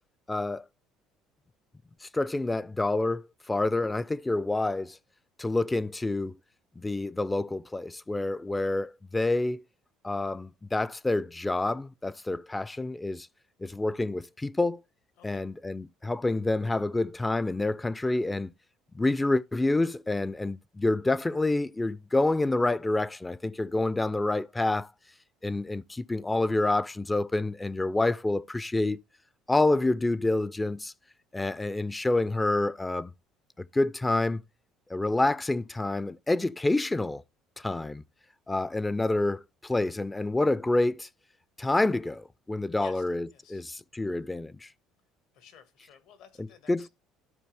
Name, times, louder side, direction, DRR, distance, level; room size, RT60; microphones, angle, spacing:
voice 1, 0.3-0.7 2.0-5.0 5.4-6.4 6.8-9.6 10.0-13.3 13.6-14.8 15.2-18.5 18.9-24.9 25.4-29.0 29.5-30.9 31.3-33.1 33.6-34.4 34.9-37.2 37.6-38.0 38.5-41.1 41.6-44.7 46.7-46.9, left 2 dB, 15° left, 0.4 m, -28 dB
voice 2, 43.3-43.6 45.3-46.9, left 8 dB, 75° left, 1.9 m, -54 dB
12.5 x 4.3 x 3.4 m
supercardioid pair, 90°, 0 cm